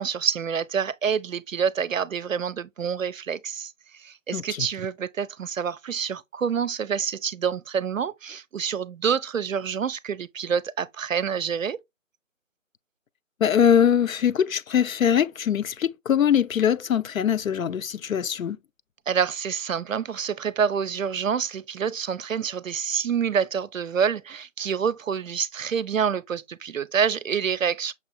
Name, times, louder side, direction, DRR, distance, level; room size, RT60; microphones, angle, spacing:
voice 1, 0.0-11.8 19.1-27.9, right 7 dB, 75° right, 0.5 m, -27 dB
voice 2, 4.3-4.7 13.4-18.6, left 8 dB, 85° left, 0.5 m, -22 dB
6.0 x 2.8 x 2.5 m
figure-of-eight pair, 170°, 40 cm